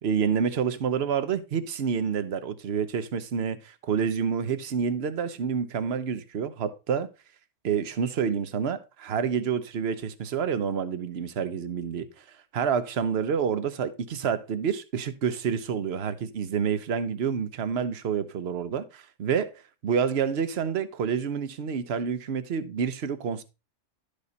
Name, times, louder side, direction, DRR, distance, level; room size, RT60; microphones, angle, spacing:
voice 1, 0.0-7.1 7.6-12.1 12.5-19.5 19.8-23.4, right 7 dB, 60° right, 1.1 m, -28 dB
12.0 x 5.1 x 4.0 m
omnidirectional pair, 1.3 m